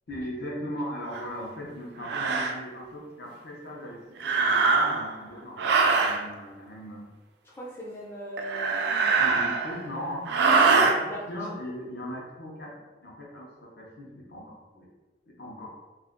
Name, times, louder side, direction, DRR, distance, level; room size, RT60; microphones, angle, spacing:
voice 1, 0.1-7.1 9.2-10.3 10.7-11.0 11.3-14.9 15.3-15.7, equal, 60° left, -3 dB, 0.7 m, -38 dB
sound 1, 1.1-1.3 2.0-2.5 4.2-5.1 5.6-6.2 8.4-9.8 10.3-11.0, right 4 dB, 65° right, 0.3 m, -23 dB
voice 2, 7.4-9.4 10.4-10.6 10.9-11.2 11.5-11.6, equal, 15° left, -5 dB, 0.4 m, -40 dB
2.4 x 2.2 x 3.5 m, 1.2 s
head